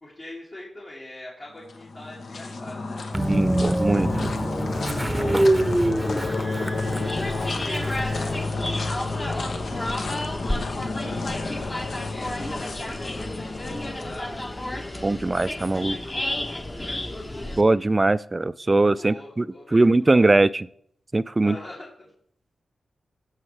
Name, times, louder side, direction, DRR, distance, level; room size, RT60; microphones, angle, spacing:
voice 1, 0.0-3.4 5.1-5.3 6.3-7.2 7.6-10.3 10.9-13.5 13.8-14.7 16.8-17.5 19.0-20.4 21.4-22.1, left 1 dB, 50° left, -5 dB, 2.4 m, -43 dB
sound 1, 1.6-14.9, left 3 dB, 70° left, 0.9 m, -31 dB
Train, 3.1-8.4, right 1 dB, 15° right, 0.7 m, -25 dB
voice 2, 3.3-4.3 15.0-16.0 17.6-19.4 19.7-20.7 21.1-21.5, right 2 dB, 30° right, 16 dB, 0.3 m, -21 dB
sound 2, 6.8-17.6, left 1 dB, 30° left, 1.1 m, -32 dB
14.5 x 5.5 x 3.3 m, 0.64 s
cardioid pair, 55°, 0 cm